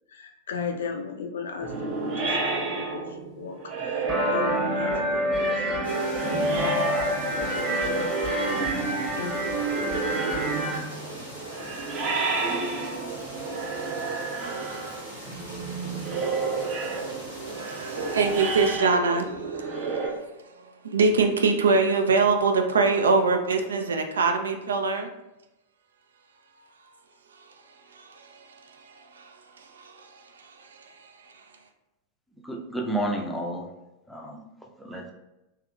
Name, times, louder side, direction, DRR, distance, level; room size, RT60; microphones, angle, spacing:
voice 1, 0.1-5.9 6.2-7.0 7.5-8.7 9.1-9.6, left 5 dB, 65° left, 5 dB, 0.4 m, -37 dB
sound 1, 1.6-20.1, right 4 dB, 45° right, 0.9 m, -31 dB
sound 2, 4.1-10.8, equal, 15° right, 1.1 m, -28 dB
sound 3, 5.8-18.8, equal, 85° right, 1.3 m, -42 dB
voice 2, 17.6-20.2 20.6-25.1 27.9-31.1, right 4 dB, 70° right, 6 dB, 0.4 m, -25 dB
voice 3, 32.4-33.7 34.1-34.5 34.8-35.1, right 1 dB, ahead, -1 dB, 0.5 m, -31 dB
3.5 x 2.9 x 2.3 m, 0.95 s
figure-of-eight pair, 90°, 0 cm